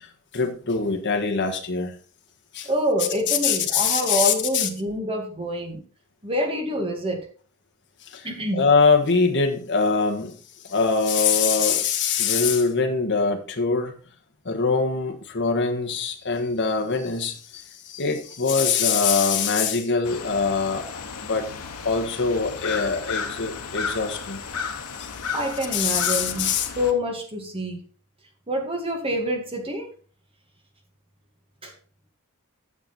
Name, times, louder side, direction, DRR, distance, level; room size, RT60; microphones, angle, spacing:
voice 1, 0.3-1.9 2.5-2.6 3.3-4.7 8.5-10.3 10.7-13.9 14.5-17.3 17.9-20.8 21.3-21.4 21.8-24.4 25.7-26.7, left 5 dB, 55° left, 1.5 m, -23 dB
voice 2, 2.6-5.8 6.2-7.2 8.2-8.7 25.3-26.5 26.8-27.8 28.5-29.9 31.6-31.7, equal, 25° right, 2.1 m, -26 dB
sound 1, 20.0-26.9, left 5 dB, 85° left, 1.2 m, -33 dB
9.0 x 6.9 x 4.3 m
head